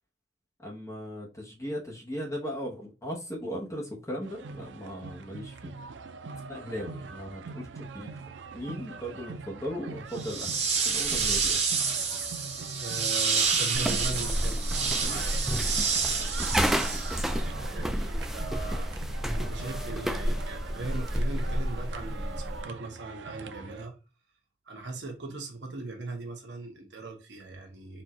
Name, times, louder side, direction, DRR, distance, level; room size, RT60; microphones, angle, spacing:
voice 1, 0.6-5.7 6.5-8.2 8.5-11.6, equal, 15° left, 1.1 m, -37 dB
sound 1, 4.2-23.9, right 4 dB, 90° right, 0.5 m, -43 dB
sound 2, 10.1-17.4, right 5 dB, 40° right, 1.0 m, -29 dB
voice 2, 12.8-16.3 16.7-24.0 24.7-28.0, right 3 dB, 70° right, 1.1 m, -40 dB
sound 3, 13.7-22.7, equal, ahead, 0.3 m, -30 dB
4.3 x 2.5 x 4.2 m
head